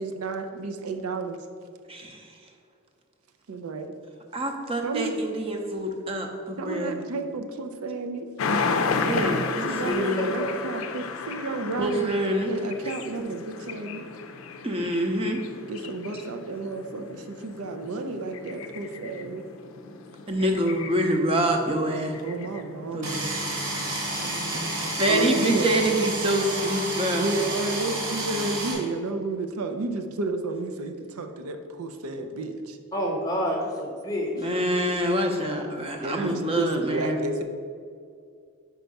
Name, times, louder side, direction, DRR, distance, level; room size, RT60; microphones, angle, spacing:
voice 1, 0.0-1.4 3.5-3.9 4.8-5.2 6.6-8.3 9.3-12.1 12.5-14.1 15.6-19.5 22.2-23.3 25.1-25.7 27.2-32.8 36.0-37.4, right 3 dB, 85° right, 6 dB, 0.5 m, -32 dB
voice 2, 1.9-2.2 4.3-7.0 9.0-10.3 11.8-12.5 13.7-13.8 14.6-15.4 20.3-22.2 22.9-23.1 24.2-24.7 25.0-27.3 34.4-37.2, right 1 dB, 25° right, 3 dB, 0.6 m, -26 dB
sound 1, 8.4-26.0, left 4 dB, 65° left, 0.4 m, -34 dB
voice 3, 9.8-10.6 32.9-34.5, equal, 15° left, -1 dB, 0.9 m, -29 dB
sound 2, 23.0-28.7, right 2 dB, 70° right, 1.5 m, -30 dB
4.6 x 4.5 x 5.2 m, 2.3 s
head